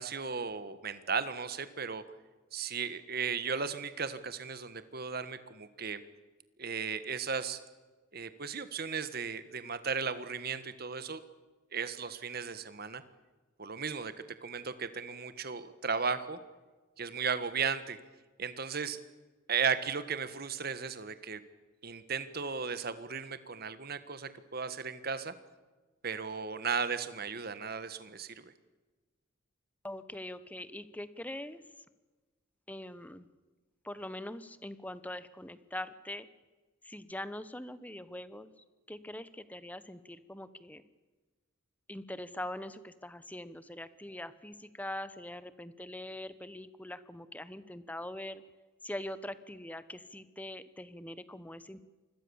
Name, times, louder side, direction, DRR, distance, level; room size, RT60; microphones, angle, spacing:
voice 1, 0.0-2.0 2.5-6.0 6.6-7.6 8.1-11.2 11.7-13.0 13.6-14.1 14.4-16.4 17.0-18.0 18.4-19.0 19.5-21.4 21.8-25.3 26.0-28.5, right 5 dB, 45° right, 12 dB, 1.6 m, -35 dB
voice 2, 29.8-31.6 32.7-33.3 33.8-36.3 36.8-40.8 41.9-48.4 48.8-51.8, left 1 dB, 5° left, 14 dB, 1.0 m, -43 dB
27.0 x 21.5 x 7.2 m, 1.3 s
head